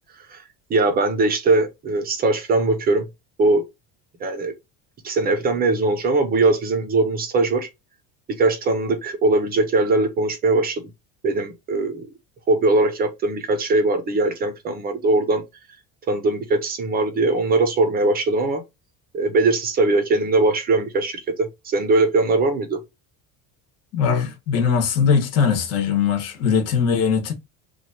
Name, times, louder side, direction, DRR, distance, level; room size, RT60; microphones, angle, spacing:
voice 1, 0.7-3.1 3.4-3.6 4.2-4.5 5.0-7.7 8.4-10.8 11.2-12.1 12.5-15.4 16.1-18.6 19.1-22.8, right 2 dB, 25° right, 0.6 m, -20 dB
voice 2, 23.9-27.3, left 6 dB, 40° left, 1.0 m, -20 dB
3.0 x 2.3 x 4.1 m
cardioid pair, 170°, 37 cm